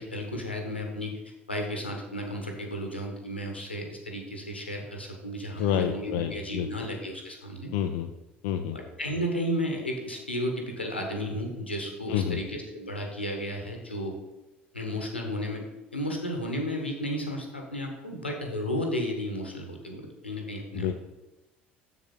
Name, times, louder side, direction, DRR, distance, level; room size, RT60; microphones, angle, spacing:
voice 1, 0.0-7.7 8.7-14.1 14.7-15.6 15.9-20.9, equal, 85° left, 2 dB, 1.2 m, -33 dB
voice 2, 5.6-6.7 7.7-8.1 8.4-8.8 12.1-12.4 20.7-20.9, left 10 dB, 60° left, 6 dB, 0.4 m, -28 dB
7.2 x 7.1 x 4.3 m, 1.0 s
figure-of-eight pair, 60°, 6 cm